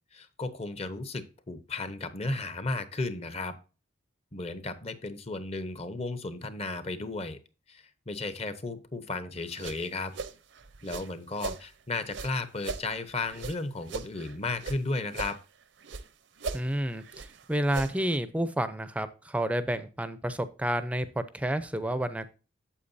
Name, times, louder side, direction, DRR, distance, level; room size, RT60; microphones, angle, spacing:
voice 1, 0.1-3.6 4.3-7.4 7.7-10.1 10.8-15.4, left 2 dB, 30° left, 11 dB, 0.9 m, -34 dB
sound 1, 9.4-11.6 12.0-14.8 15.1-16.1 16.4-18.2, right 4 dB, 65° right, 0.7 m, -39 dB
voice 2, 16.5-22.3, right 1 dB, 5° right, 12 dB, 0.5 m, -30 dB
8.4 x 7.6 x 2.6 m, 0.33 s
head